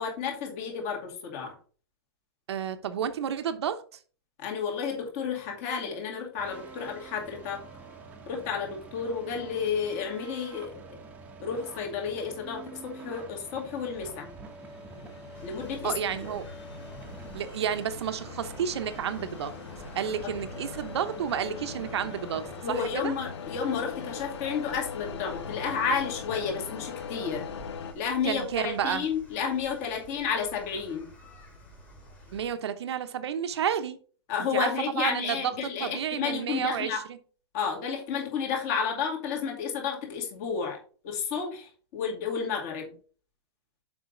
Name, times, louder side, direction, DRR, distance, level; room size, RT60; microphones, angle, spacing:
voice 1, 0.0-1.5 4.4-7.6 8.3-11.0 11.4-14.3 15.4-15.9 16.2-16.3 20.2-20.3 22.6-27.5 27.9-31.1 34.3-37.0 37.5-40.8 41.0-42.9, left 6 dB, 35° left, 2.2 m, -31 dB
voice 2, 2.5-3.8 15.8-16.5 17.3-19.5 19.9-23.1 28.2-29.1 32.3-34.0 34.5-34.7 34.9-35.5 35.8-37.2, right 8 dB, 75° right, 0.9 m, -31 dB
sound 1, 6.4-22.6, right 3 dB, 10° right, 0.9 m, -46 dB
sound 2, 13.8-27.9, left 6 dB, 80° left, 1.1 m, -41 dB
sound 3, 15.3-32.5, equal, 10° left, 1.7 m, -50 dB
7.2 x 5.4 x 3.9 m
hypercardioid pair, 165°, 14 cm